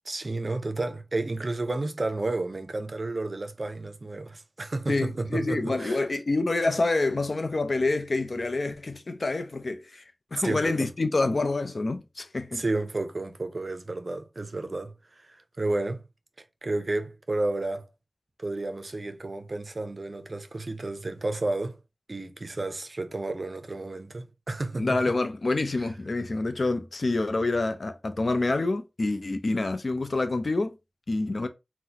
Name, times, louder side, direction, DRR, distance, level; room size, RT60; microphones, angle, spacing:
voice 1, 0.1-6.0 10.3-10.8 12.5-16.0 16.6-17.9 18.4-21.8 22.1-25.0, right 2 dB, 60° right, 0.4 m, -31 dB
voice 2, 4.9-10.0 10.3-12.6 24.8-30.8 31.1-31.5, left 2 dB, 70° left, 0.5 m, -27 dB
3.9 x 2.1 x 2.8 m
cardioid pair, 40°, 0 cm